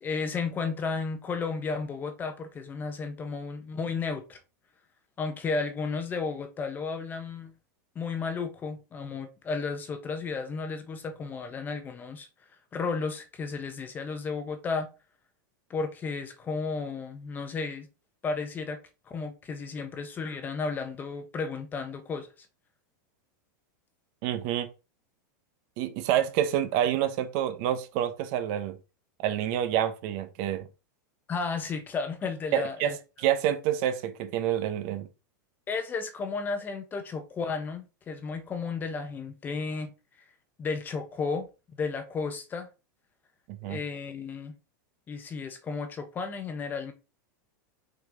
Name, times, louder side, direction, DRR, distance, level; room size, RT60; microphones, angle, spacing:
voice 1, 0.0-4.4 5.2-7.5 7.9-12.3 12.7-14.9 15.7-17.9 18.2-18.8 19.1-22.3 31.3-33.0 35.7-39.9 40.6-42.7 43.6-44.5 45.1-46.9, left 4 dB, 15° left, 1.0 m, -33 dB
voice 2, 24.2-24.7 25.8-28.8 29.2-30.7 32.5-35.1 43.6-43.8, right 11 dB, 45° right, 1.1 m, -28 dB
6.0 x 5.2 x 3.9 m
supercardioid pair, 160°, 11 cm